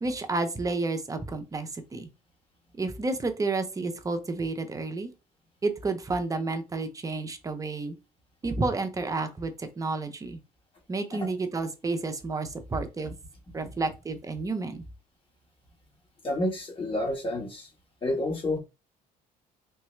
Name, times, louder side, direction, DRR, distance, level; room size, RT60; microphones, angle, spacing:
voice 1, 0.0-2.1 2.8-5.1 5.6-8.0 8.4-10.4 10.9-13.1 13.5-14.8, right 3 dB, 20° right, 8 dB, 0.6 m, -30 dB
voice 2, 16.2-17.7 18.0-18.6, left 1 dB, 30° left, 1 dB, 1.5 m, -29 dB
3.8 x 2.2 x 3.1 m, 0.27 s
cardioid pair, 110°, 17 cm